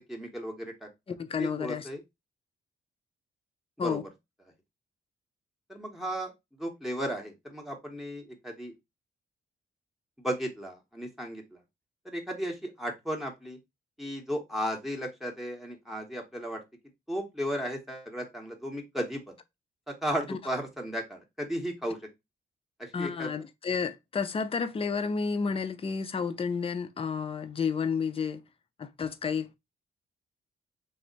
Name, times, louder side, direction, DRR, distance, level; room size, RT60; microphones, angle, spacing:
voice 1, 0.1-0.9 1.4-2.0 3.8-4.0 5.7-6.3 6.6-8.7 10.2-11.6 12.0-13.6 14.0-16.6 17.1-19.3 19.9-22.0 22.8-23.3, equal, ahead, 0.8 m, -35 dB
voice 2, 1.1-1.9 3.8-4.0 20.3-20.4 22.9-28.4 28.8-29.6, left 5 dB, 25° left, 0.4 m, -31 dB
3.3 x 2.1 x 3.8 m
cardioid pair, 100°, 21 cm